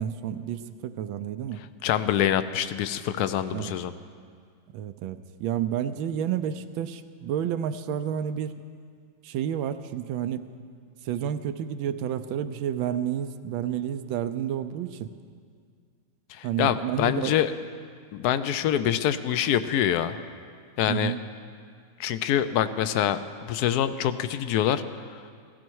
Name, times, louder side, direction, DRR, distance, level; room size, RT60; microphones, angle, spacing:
voice 1, 0.0-1.6 3.5-3.7 4.7-8.6 9.2-10.5 11.0-15.1 16.4-17.4 20.9-21.2, right 9 dB, 85° right, 10 dB, 1.4 m, -30 dB
voice 2, 1.8-3.9 16.3-17.5 18.1-20.2 20.8-21.1 22.0-24.8, left 10 dB, 75° left, 12 dB, 0.9 m, -25 dB
16.0 x 15.0 x 4.6 m, 2.1 s
omnidirectional pair, 2.1 m